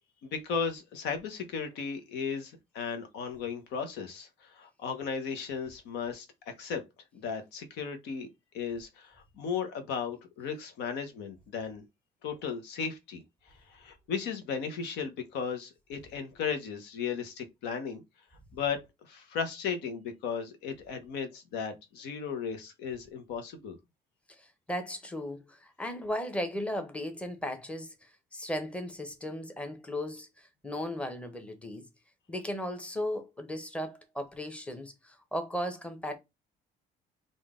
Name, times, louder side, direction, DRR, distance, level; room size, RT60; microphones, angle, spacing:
voice 1, 0.2-6.3 6.6-6.8 7.1-8.3 8.5-11.8 12.2-18.0 18.5-23.8, left 6 dB, 90° left, 1.0 m, -36 dB
voice 2, 24.3-31.9 32.3-36.1, left 1 dB, 5° left, 0.9 m, -36 dB
3.7 x 2.6 x 3.6 m
cardioid pair, 110°, 17 cm